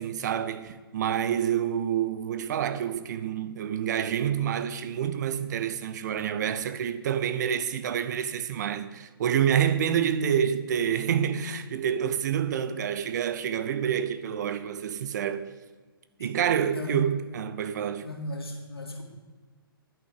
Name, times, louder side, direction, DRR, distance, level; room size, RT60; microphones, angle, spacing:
voice 1, 0.0-15.5 16.2-18.1, right 9 dB, 50° right, 0.7 m, -28 dB
voice 2, 18.0-19.0, left 1 dB, 85° left, 2.5 m, -36 dB
10.5 x 6.0 x 7.7 m
figure-of-eight pair, 130°, 12 cm